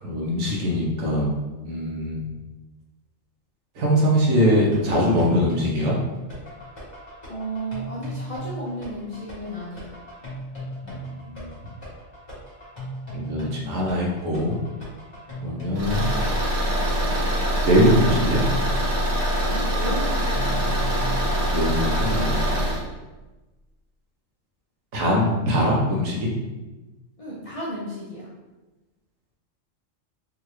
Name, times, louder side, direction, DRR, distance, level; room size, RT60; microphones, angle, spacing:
voice 1, 0.0-1.4 1.6-2.2 3.7-6.0 10.8-11.5 13.1-14.6 15.4-16.1 17.6-18.4 21.5-22.7 24.9-26.3, equal, 85° right, -2 dB, 1.2 m, -22 dB
sound 1, 4.4-22.0, right 1 dB, 20° left, 1.2 m, -37 dB
voice 2, 7.3-9.9 19.4-20.9 27.2-28.3, right 1 dB, 50° left, -7 dB, 0.4 m, -33 dB
Car / Engine, 15.7-22.8, equal, 70° right, 1.3 m, -24 dB
3.6 x 2.5 x 3.1 m, 1.1 s
omnidirectional pair, 1.4 m